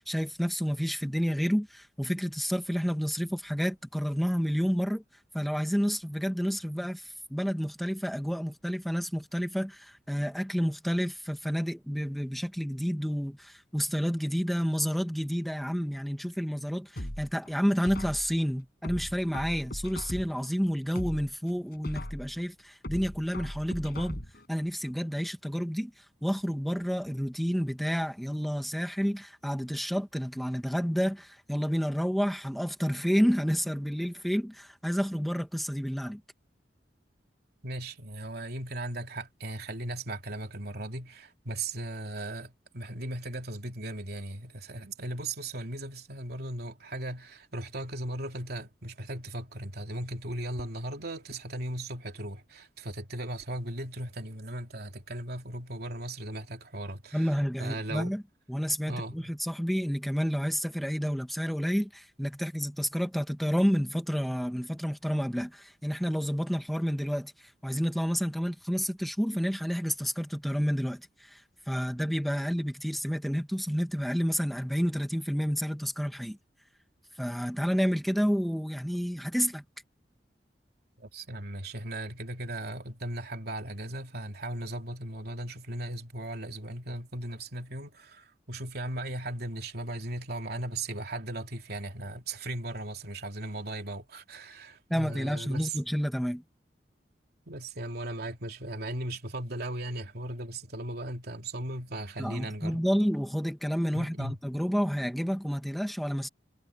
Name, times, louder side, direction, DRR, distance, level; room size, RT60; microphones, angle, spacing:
voice 1, 0.0-5.0 5.3-24.2 24.5-25.9 26.2-36.2 57.1-58.2 58.5-71.4 71.7-76.4 77.2-79.6 94.9-96.4 102.2-106.3, equal, ahead, 2.0 m, -30 dB
sound 1, 17.0-18.4 18.8-20.5 20.8-22.4 22.8-24.5 24.8-24.9, left 1 dB, 60° left, 7.6 m, -39 dB
voice 2, 37.6-58.2 58.9-59.3 81.0-95.8 97.5-102.8 103.9-104.4, right 1 dB, 60° right, 3.3 m, -37 dB
head